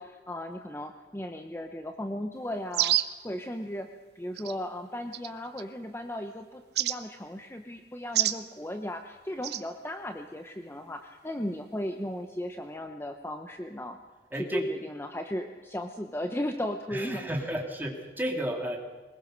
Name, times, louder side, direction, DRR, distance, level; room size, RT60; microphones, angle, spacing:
voice 1, 0.0-3.0 3.2-3.9 4.1-14.0 14.3-17.2, left 1 dB, 15° left, 6 dB, 0.9 m, -36 dB
sound 1, 2.7-3.2 4.4-4.5 5.1-5.6 6.7-7.0 8.1-8.4 9.4-9.6, right 13 dB, 65° right, 0.8 m, -27 dB
voice 2, 14.3-14.6 16.9-18.8, equal, 10° right, 1 dB, 2.8 m, -32 dB
22.0 x 20.5 x 6.6 m, 1.3 s
head